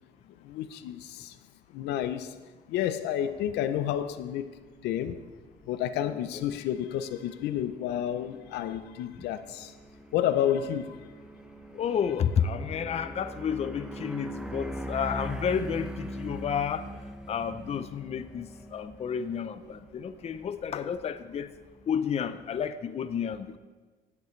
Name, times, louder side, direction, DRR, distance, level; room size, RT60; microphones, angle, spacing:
voice 1, 0.4-1.3 1.7-2.3 2.7-4.5 4.8-5.2 5.7-9.7 10.1-11.0, left 10 dB, 80° left, 11 dB, 0.6 m, -30 dB
sound 1, 3.3-22.6, equal, 5° right, 0.9 m, -43 dB
voice 2, 11.7-16.9 17.3-21.5 21.9-23.6, left 7 dB, 40° left, 11 dB, 0.6 m, -31 dB
16.0 x 8.3 x 3.2 m, 1.4 s
cardioid pair, 110°, 17 cm